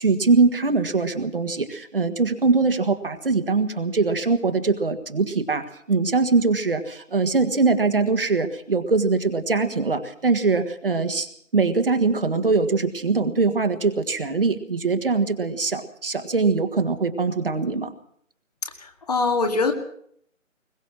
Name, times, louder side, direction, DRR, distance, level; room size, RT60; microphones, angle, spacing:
voice 1, 0.0-11.3 11.5-17.9, right 4 dB, 45° right, 7 dB, 1.7 m, -22 dB
voice 2, 18.8-19.7, left 3 dB, 30° left, 5 dB, 2.2 m, -23 dB
22.0 x 20.0 x 6.2 m, 0.66 s
figure-of-eight pair, 155°, 40 cm